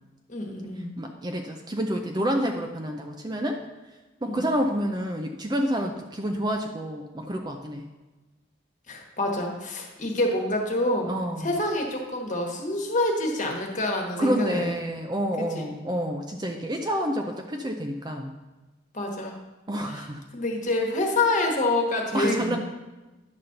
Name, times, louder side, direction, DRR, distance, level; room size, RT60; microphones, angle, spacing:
voice 1, 0.3-0.9 4.2-4.4 8.9-14.7 15.4-15.7 18.9-19.4 19.8-22.6, left 2 dB, 35° left, 0 dB, 1.4 m, -27 dB
voice 2, 1.0-3.6 4.2-7.8 11.1-11.5 14.2-18.3 19.7-20.2 22.1-22.6, equal, 20° right, 3 dB, 0.5 m, -28 dB
10.5 x 4.2 x 6.5 m, 1.1 s
head